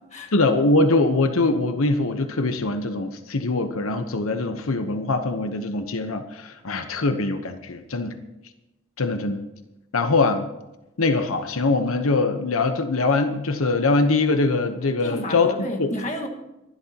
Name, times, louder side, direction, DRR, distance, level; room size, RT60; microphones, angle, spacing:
voice 1, 0.3-8.2 9.0-9.4 9.9-10.5 11.0-15.9, left 3 dB, 80° left, 8 dB, 1.0 m, -22 dB
voice 2, 15.0-16.3, left 1 dB, 35° left, 2 dB, 1.6 m, -31 dB
23.5 x 12.0 x 2.9 m, 0.97 s
head